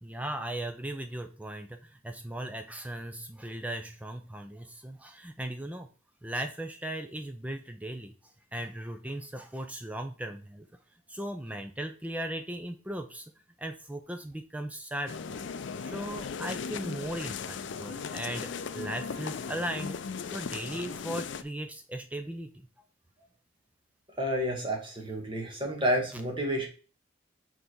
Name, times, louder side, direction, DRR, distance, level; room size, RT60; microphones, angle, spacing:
voice 1, 0.0-5.9 6.2-10.7 11.1-13.3 13.6-15.4 15.8-20.0 20.3-22.7, right 1 dB, 5° right, 7 dB, 0.4 m, -37 dB
sound 1, 15.1-21.4, left 6 dB, 70° left, 0.4 m, -37 dB
voice 2, 24.2-26.7, equal, 25° right, 1 dB, 1.4 m, -30 dB
5.6 x 4.0 x 4.5 m, 0.37 s
head